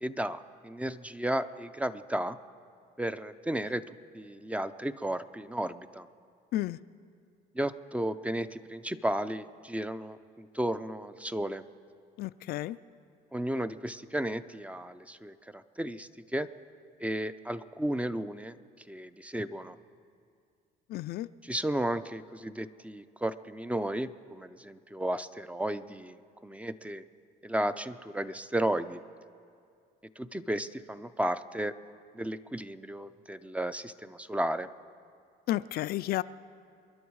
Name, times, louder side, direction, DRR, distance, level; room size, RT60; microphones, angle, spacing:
voice 1, 0.0-2.4 3.0-3.8 4.1-6.1 7.5-11.6 13.3-16.5 17.0-18.6 18.9-19.8 21.4-27.0 27.4-29.0 30.2-31.7 32.1-34.7, right 1 dB, 10° right, 12 dB, 0.5 m, -34 dB
voice 2, 12.2-12.8 20.9-21.3 35.5-36.2, left 15 dB, 65° left, 14 dB, 0.4 m, -31 dB
28.0 x 11.0 x 4.7 m, 2.3 s
cardioid pair, 110°, 17 cm